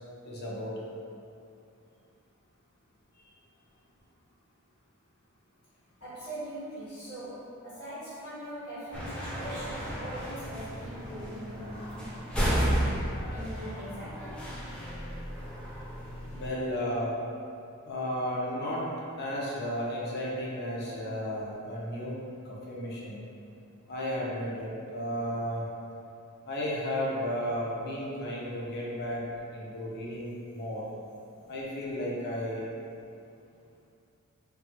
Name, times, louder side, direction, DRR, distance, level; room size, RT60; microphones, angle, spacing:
voice 1, 0.2-0.7 16.3-17.1 17.9-18.8 19.2-22.2 22.4-23.2 23.9-25.7 26.5-29.2 29.5-30.9 31.5-32.7, equal, 50° left, -5 dB, 0.6 m, -33 dB
voice 2, 6.0-12.1 12.4-14.5, right 1 dB, 90° left, -12 dB, 1.3 m, -41 dB
sound 1, 8.9-16.5, equal, 5° left, 0.4 m, -33 dB
3.3 x 2.1 x 2.8 m, 2.5 s
head